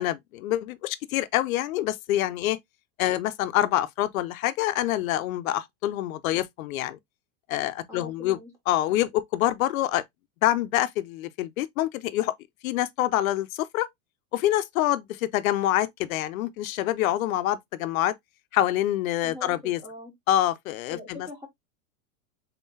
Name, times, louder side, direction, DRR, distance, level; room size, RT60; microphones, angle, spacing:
voice 1, 0.0-2.6 3.0-7.0 7.5-8.4 8.7-10.0 10.4-12.3 12.6-13.9 14.3-18.1 18.5-19.8 20.3-21.3, left 14 dB, 70° left, 0.6 m, -26 dB
voice 2, 7.9-8.5 19.2-20.1 20.9-21.5, left 1 dB, 5° right, 0.5 m, -42 dB
4.0 x 3.6 x 2.6 m
supercardioid pair, 165°, 44 cm